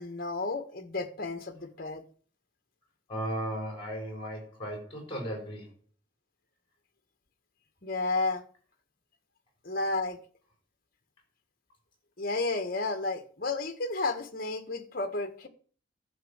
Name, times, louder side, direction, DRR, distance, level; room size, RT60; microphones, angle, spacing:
voice 1, 0.0-2.0 7.8-8.4 9.6-10.2 12.2-15.5, left 3 dB, 45° left, 1.6 m, -32 dB
voice 2, 3.1-5.7, equal, 25° left, 4.4 m, -36 dB
11.0 x 6.5 x 8.0 m
head